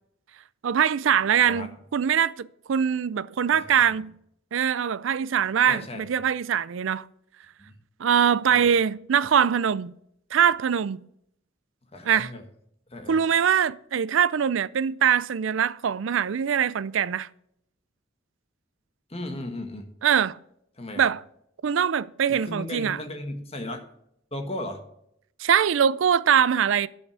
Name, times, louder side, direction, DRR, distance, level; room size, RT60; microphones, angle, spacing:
voice 1, 0.6-4.1 4.5-7.1 8.0-9.9 10.3-11.0 12.0-12.3 13.1-17.3 20.0-20.4 21.0-21.2 21.6-23.0 25.4-26.9, right 8 dB, 75° right, 0.4 m, -23 dB
voice 2, 3.5-4.0 5.6-6.0 7.6-7.7 8.5-8.7 11.9-12.4 12.9-13.3 19.1-19.9 20.8-21.0 22.3-23.9 24.3-24.8, left 1 dB, 30° left, 1.6 m, -36 dB
10.5 x 5.8 x 8.1 m
head